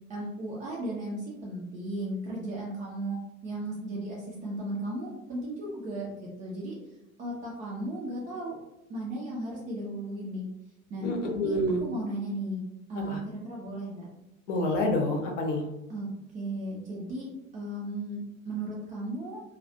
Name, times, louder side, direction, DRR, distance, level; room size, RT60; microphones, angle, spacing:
voice 1, 0.1-6.8 7.2-8.6 8.9-10.5 10.9-11.6 11.8-12.6 12.9-14.1 15.9-19.4, right 1 dB, 20° right, -3 dB, 0.4 m, -35 dB
voice 2, 11.0-11.8 13.0-13.2 14.5-15.7, left 1 dB, 60° left, 2 dB, 0.7 m, -28 dB
2.2 x 2.2 x 2.6 m, 0.91 s
figure-of-eight pair, 75°, 42 cm